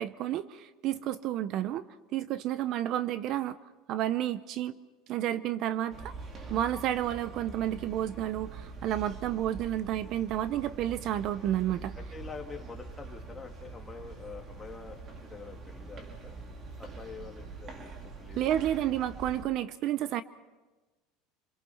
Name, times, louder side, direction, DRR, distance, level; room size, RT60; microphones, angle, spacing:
voice 1, 0.0-1.8 2.1-3.6 3.9-4.7 5.1-6.1 6.5-12.0 18.4-20.2, right 12 dB, 45° right, 14 dB, 0.6 m, -31 dB
sound 1, 5.9-19.4, right 3 dB, 30° right, 2.4 m, -44 dB
voice 2, 12.0-16.4 16.8-18.8, left 5 dB, 15° left, 1 dB, 2.4 m, -46 dB
27.0 x 22.5 x 5.7 m, 1.2 s
cardioid pair, 145°, 0 cm